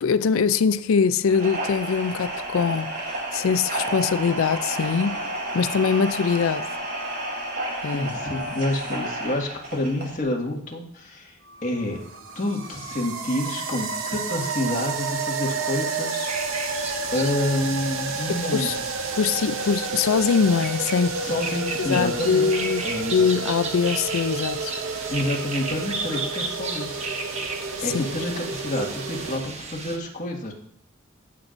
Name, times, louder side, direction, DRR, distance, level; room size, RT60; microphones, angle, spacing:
voice 1, 0.0-5.2 5.5-6.7 7.8-8.1 18.3-18.8 19.1-21.2 21.8-22.8 23.1-24.7 27.8-28.0, left 6 dB, 80° left, 0.4 m, -23 dB
sound 1, 1.3-10.2, right 1 dB, 50° right, 3.0 m, -31 dB
voice 2, 7.9-12.0 12.4-16.7 17.1-18.8 21.2-22.5 22.8-23.2 25.1-27.1 27.8-30.5, left 1 dB, 35° left, 1.8 m, -28 dB
sound 2, 11.5-29.4, right 4 dB, 75° right, 0.9 m, -31 dB
sound 3, 16.2-30.0, right 3 dB, 35° right, 1.0 m, -35 dB
15.0 x 7.3 x 2.6 m
head